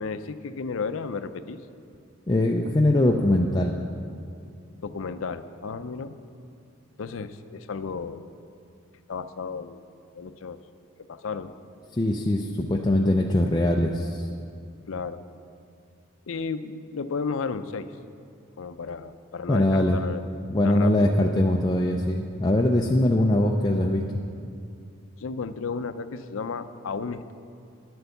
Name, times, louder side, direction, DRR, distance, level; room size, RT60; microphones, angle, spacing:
voice 1, 0.0-1.6 4.8-6.1 7.0-8.2 9.1-9.8 10.1-10.6 11.1-11.5 14.9-15.2 16.3-17.9 18.6-20.3 20.6-21.1 25.2-27.3, left 5 dB, 75° left, 11 dB, 0.5 m, -33 dB
voice 2, 2.3-3.8 11.9-14.3 19.5-20.0 20.5-24.0, left 1 dB, 20° left, 1 dB, 0.4 m, -22 dB
10.0 x 7.9 x 7.0 m, 2.4 s
head